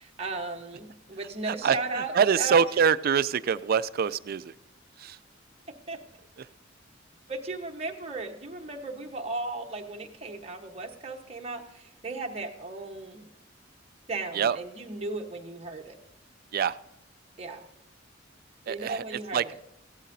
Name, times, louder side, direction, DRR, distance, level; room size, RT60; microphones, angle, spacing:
voice 1, 0.0-2.6 5.9-6.0 7.3-13.3 14.1-16.0 17.4-17.7 18.7-19.6, right 3 dB, 30° right, 2 dB, 1.1 m, -36 dB
voice 2, 2.1-4.5 5.0-5.2 14.3-14.6 16.5-16.8 18.7-19.0 19.3-19.4, right 7 dB, 50° right, 16 dB, 0.3 m, -24 dB
16.0 x 11.5 x 2.7 m, 0.88 s
head